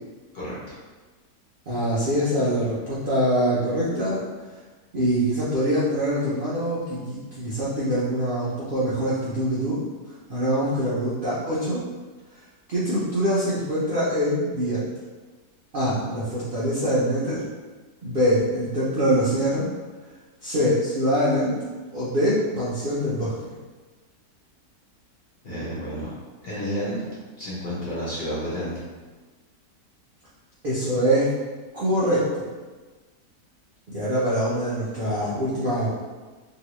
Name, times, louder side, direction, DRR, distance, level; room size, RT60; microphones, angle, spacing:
voice 1, 1.7-4.2 4.9-9.8 10.3-11.8 12.7-14.9 15.7-17.4 18.0-19.7 20.4-21.6 21.9-23.3 30.6-31.3 31.7-32.5 33.9-36.0, equal, 85° right, -10 dB, 0.4 m, -24 dB
voice 2, 25.4-26.1 26.4-27.0 27.4-28.8, equal, 40° left, -8 dB, 1.0 m, -30 dB
2.9 x 2.8 x 3.0 m, 1.3 s
omnidirectional pair, 1.8 m